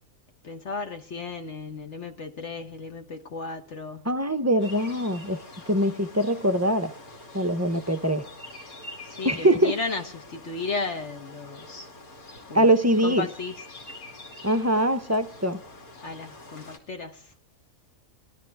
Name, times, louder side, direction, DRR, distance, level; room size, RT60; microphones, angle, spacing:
voice 1, 0.4-4.1 9.0-11.9 12.5-12.7 13.0-13.5 16.0-17.3, left 4 dB, 55° left, 1.4 m, -34 dB
voice 2, 4.0-6.9 7.3-8.3 9.2-9.7 12.5-13.3 14.4-15.6, right 1 dB, 20° right, 0.5 m, -23 dB
sound 1, 4.6-16.8, left 2 dB, 85° left, 3.2 m, -45 dB
21.0 x 12.5 x 3.5 m
omnidirectional pair, 1.5 m